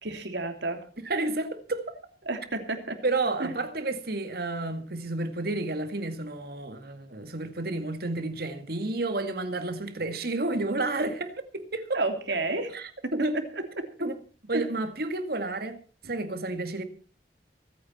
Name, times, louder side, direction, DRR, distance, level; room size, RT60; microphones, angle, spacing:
voice 1, 0.0-0.8 2.2-3.0 3.4-3.5 11.9-12.8 14.5-14.6, right 2 dB, 80° right, 3.0 m, -30 dB
voice 2, 1.0-2.0 3.0-12.0 12.7-13.4 14.0-14.2 14.5-15.8 16.0-16.8, right 2 dB, 60° right, 2.0 m, -31 dB
24.0 x 9.5 x 4.3 m
head